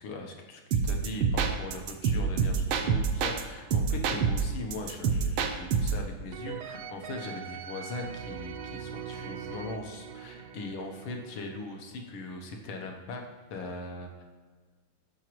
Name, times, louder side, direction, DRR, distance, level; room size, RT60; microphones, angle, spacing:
voice 1, 0.0-13.2 13.5-14.2, left 2 dB, 80° left, 2 dB, 1.8 m, -40 dB
sound 1, 0.7-3.4 3.7-6.0, right 6 dB, 90° right, 1.5 m, -27 dB
sound 2, 6.3-12.2, right 8 dB, 70° right, 1.1 m, -42 dB
12.0 x 5.1 x 3.1 m, 1.5 s
omnidirectional pair, 2.2 m